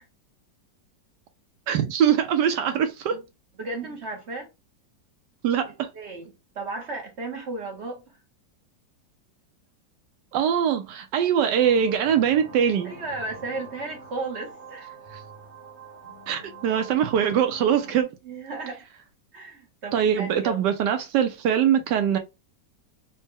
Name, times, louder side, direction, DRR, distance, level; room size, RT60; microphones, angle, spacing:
voice 1, 1.7-3.2 5.4-5.9 10.3-12.9 16.3-18.1 19.9-22.2, right 8 dB, 75° right, 1.1 m, -22 dB
voice 2, 3.6-4.5 5.9-8.2 12.8-15.0 18.2-18.9 19.3-20.6, right 3 dB, 55° right, 0.7 m, -35 dB
sound 1, 11.5-18.0, right 4 dB, 35° right, 1.2 m, -44 dB
4.1 x 2.1 x 3.4 m
omnidirectional pair, 2.0 m